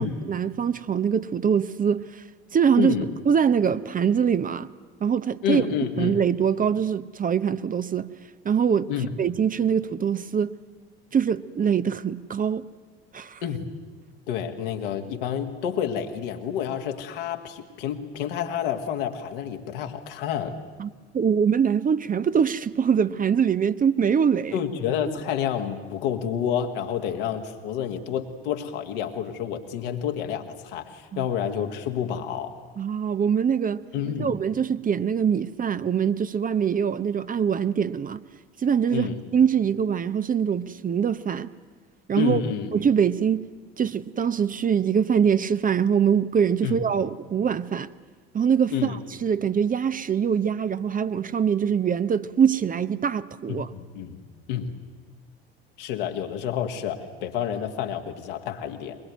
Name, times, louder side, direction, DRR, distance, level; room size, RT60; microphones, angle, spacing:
voice 1, 0.0-2.2 2.5-4.7 5.0-5.7 6.0-8.1 8.4-8.9 9.2-10.6 11.1-12.7 13.1-13.4 20.8-24.6 31.1-31.3 32.8-33.9 34.2-38.2 38.6-41.5 42.1-42.4 42.7-43.5 43.8-47.9 48.3-53.7, right 7 dB, 30° right, 0.8 m, -23 dB
voice 2, 2.8-3.1 5.4-6.2 8.9-9.1 13.4-13.7 14.3-20.6 24.5-32.6 33.9-34.4 38.9-39.2 42.2-42.7 46.6-46.8 48.7-49.0 53.5-54.2 54.5-54.8 55.8-59.0, left 9 dB, 70° left, 2.0 m, -29 dB
22.5 x 21.0 x 9.4 m
figure-of-eight pair, 55°, 29 cm